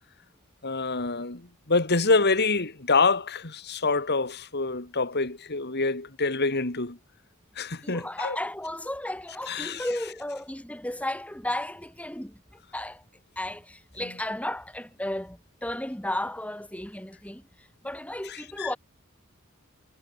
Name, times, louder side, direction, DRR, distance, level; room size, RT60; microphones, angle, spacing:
voice 1, 0.6-1.4 1.7-7.0 7.6-8.4 9.5-9.8 18.3-18.7, left 3 dB, 50° left, 2.6 m, -26 dB
voice 2, 7.8-13.0 13.4-18.8, left 1 dB, 5° left, 3.5 m, -34 dB
head